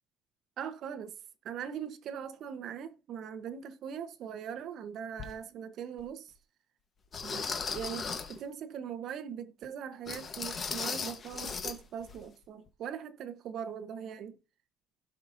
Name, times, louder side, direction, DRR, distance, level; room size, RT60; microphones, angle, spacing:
voice 1, 0.6-1.2 1.4-6.3 7.2-7.5 7.7-14.4, right 8 dB, 50° right, 0.9 m, -41 dB
sound 1, 5.2-5.3 6.0-6.1 7.1-8.4 10.1-11.8 12.0-12.2 12.7-12.8, left 5 dB, 30° left, 1.1 m, -37 dB
16.5 x 5.7 x 2.6 m
cardioid pair, 150°, 0 cm